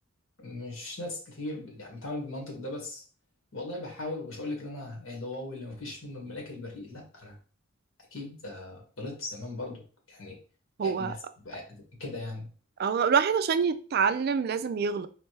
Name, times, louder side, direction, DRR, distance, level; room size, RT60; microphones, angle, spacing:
voice 1, 0.4-3.0 3.5-7.4 8.1-10.4 10.8-11.2 11.4-12.5, left 2 dB, 75° left, 0 dB, 1.7 m, -38 dB
voice 2, 10.8-11.1 12.8-15.1, right 6 dB, 50° right, 12 dB, 0.3 m, -26 dB
4.2 x 3.3 x 3.3 m, 0.38 s
head